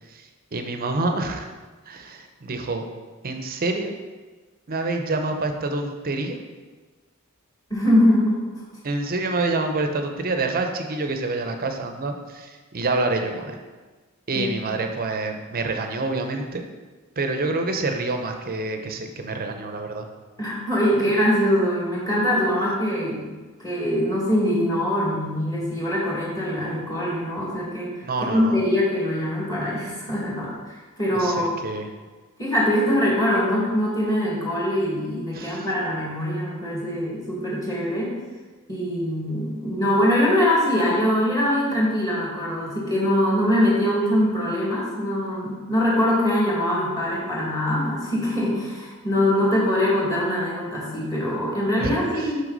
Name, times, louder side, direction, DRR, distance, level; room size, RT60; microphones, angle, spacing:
voice 1, 0.1-1.5 1.9-2.9 3.2-3.9 4.7-6.4 8.8-13.6 14.3-16.6 17.2-20.1 28.0-28.6 31.1-31.9 35.3-35.7 51.8-52.3, right 2 dB, 45° right, 5 dB, 0.7 m, -27 dB
voice 2, 7.7-8.4 14.3-14.5 20.4-23.3 23.6-31.5 32.4-38.2 38.7-52.4, left 1 dB, 15° left, -5 dB, 1.9 m, -23 dB
6.1 x 5.7 x 4.0 m, 1.3 s
head